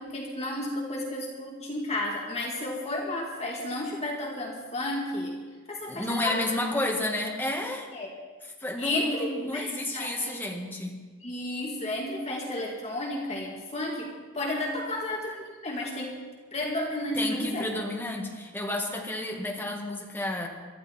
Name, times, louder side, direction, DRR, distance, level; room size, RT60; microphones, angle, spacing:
voice 1, 0.0-5.4 5.7-6.6 7.9-8.1 8.8-10.5 11.2-16.2 16.5-17.7, left 1 dB, 30° left, -2 dB, 2.0 m, -32 dB
voice 2, 5.9-7.9 8.6-11.0 17.2-20.5, left 1 dB, 10° left, 0 dB, 2.0 m, -31 dB
22.5 x 13.5 x 4.4 m, 1.4 s
head